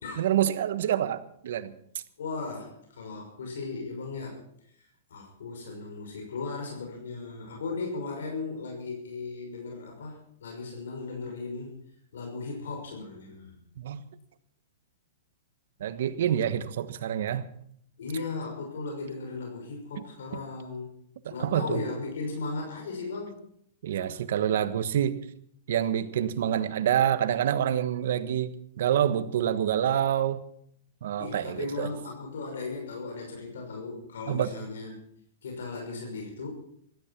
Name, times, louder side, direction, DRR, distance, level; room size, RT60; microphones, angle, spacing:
voice 1, 0.2-1.7 13.8-14.0 15.8-17.5 20.3-20.4 21.4-21.8 23.8-25.2 25.7-30.4 31.0-31.9 34.3-34.5, right 10 dB, 70° right, 1.3 m, -27 dB
voice 2, 2.2-4.4 5.1-11.8 12.1-13.5 18.0-20.9 21.3-23.4 31.2-35.0 35.4-36.5, left 3 dB, 85° left, 5.9 m, -36 dB
16.0 x 13.0 x 6.1 m
hypercardioid pair, 140°, 0 cm